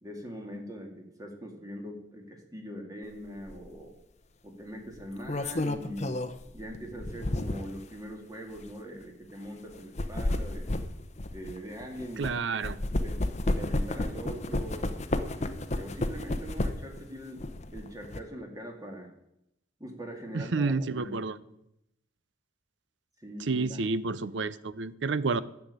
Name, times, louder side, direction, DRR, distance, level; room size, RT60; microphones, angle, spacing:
voice 1, 0.0-3.9 4.4-6.2 6.5-10.7 11.3-12.3 12.6-13.2 13.5-14.9 15.4-17.4 17.7-19.1 19.8-21.5 23.2-23.8, equal, 20° right, 2 dB, 2.2 m, -42 dB
sound 1, 3.5-3.7 4.9-7.8 8.5-8.7 9.7-12.3 12.6-17.0 17.4-18.2, left 1 dB, 35° left, 0.8 m, -31 dB
voice 2, 12.2-12.8 20.3-21.4 23.5-25.4, right 4 dB, 70° right, 16 dB, 0.6 m, -29 dB
10.5 x 7.1 x 9.2 m, 0.82 s
head